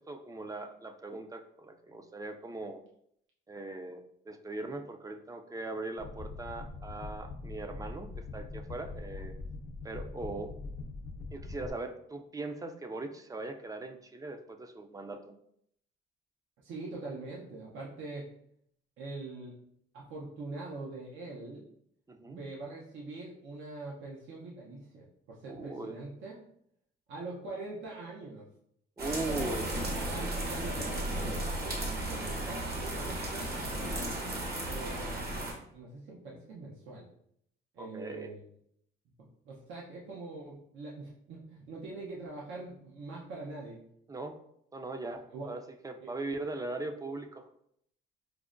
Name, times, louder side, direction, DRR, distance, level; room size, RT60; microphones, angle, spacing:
voice 1, 0.0-2.8 3.5-9.4 9.8-10.5 11.3-15.4 22.1-22.4 25.5-26.0 29.0-29.7 37.8-38.3 44.1-44.4 44.7-47.5, right 2 dB, 20° right, 6 dB, 0.3 m, -40 dB
sound 1, 6.0-11.7, left 3 dB, 85° left, 0.6 m, -42 dB
voice 2, 16.6-18.3 19.0-19.6 19.9-21.6 22.3-26.4 27.1-28.5 29.3-29.6 30.1-33.6 34.6-35.3 35.7-37.1 37.7-38.4 39.2-43.8 45.3-45.5 46.0-46.1, right 3 dB, 75° right, -3 dB, 0.6 m, -43 dB
sound 2, 29.0-35.5, right 1 dB, 50° right, 1.0 m, -34 dB
4.7 x 2.1 x 2.4 m, 0.71 s
cardioid pair, 90°, 20 cm